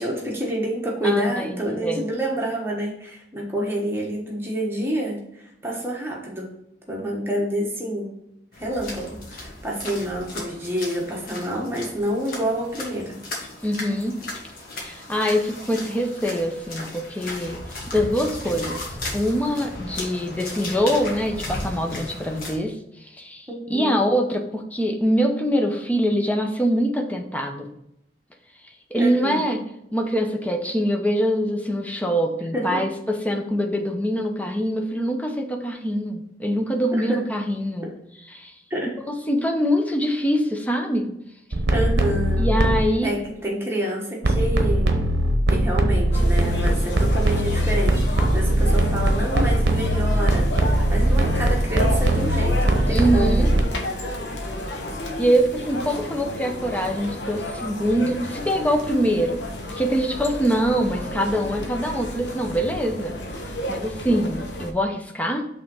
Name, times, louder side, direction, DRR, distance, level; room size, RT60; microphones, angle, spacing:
voice 1, 0.0-6.5 6.9-8.1 8.5-13.2 23.5-24.0 28.9-29.6 32.5-32.8 36.9-37.2 38.7-38.9 41.7-42.5 43.0-45.0 45.5-54.2, right 1 dB, 15° right, -3 dB, 1.3 m, -28 dB
voice 2, 1.0-2.0 13.6-14.2 14.8-17.6 17.9-27.7 28.9-29.6 29.9-37.9 38.3-38.6 39.1-41.1 42.4-43.1 52.9-53.5 55.2-59.5 59.8-63.2 63.4-65.5, equal, 10° left, 2 dB, 0.6 m, -24 dB
sound 1, 8.5-22.6, left 2 dB, 50° left, 1.5 m, -36 dB
sound 2, 41.5-42.9 44.2-53.6, right 1 dB, 70° right, 0.8 m, -20 dB
sound 3, 46.1-64.7, left 1 dB, 75° left, 0.9 m, -32 dB
5.6 x 3.5 x 5.5 m, 0.79 s
head